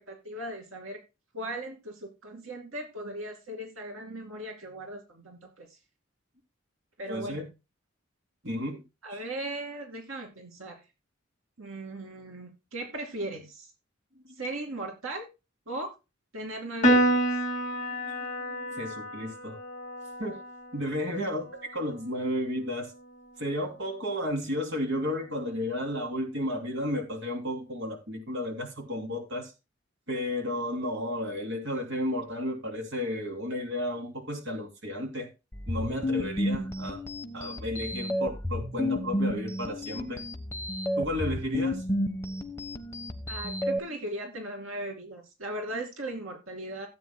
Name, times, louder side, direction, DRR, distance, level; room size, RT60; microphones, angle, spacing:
voice 1, 0.1-1.0 1.3-5.8 7.0-7.5 9.0-10.8 11.6-13.7 14.4-15.3 15.7-15.9 16.3-17.2 43.3-46.9, right 1 dB, 90° right, 2.5 m, -38 dB
voice 2, 7.1-7.5 8.4-8.8 9.1-9.2 18.0-19.6 20.2-20.4 20.7-21.5 21.7-22.9 23.4-29.5 30.1-35.3 35.7-37.0 37.3-40.2 41.0-41.8, left 1 dB, 65° right, 3.0 m, -33 dB
Piano, 16.8-23.5, right 1 dB, 35° left, 2.1 m, -30 dB
sound 1, 35.5-43.8, left 1 dB, 10° left, 1.1 m, -31 dB
16.0 x 8.5 x 2.2 m
head